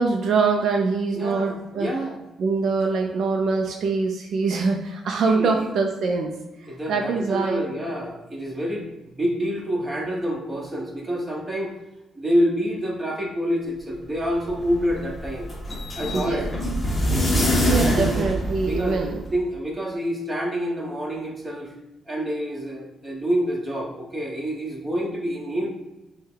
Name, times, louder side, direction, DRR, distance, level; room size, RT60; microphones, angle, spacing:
voice 1, 0.0-1.9 2.4-6.3 6.6-7.7 16.1-16.5 17.7-19.2, right 4 dB, 65° right, 2 dB, 0.5 m, -24 dB
voice 2, 1.1-2.2 5.3-5.6 6.7-11.7 12.1-15.5 16.0-16.5 17.8-18.3 18.6-21.7 22.1-25.7, equal, 15° right, -2 dB, 1.2 m, -27 dB
sound 1, 14.2-19.3, equal, 25° left, 0.9 m, -25 dB
5.3 x 2.2 x 3.8 m, 0.98 s
cardioid pair, 90°, 0 cm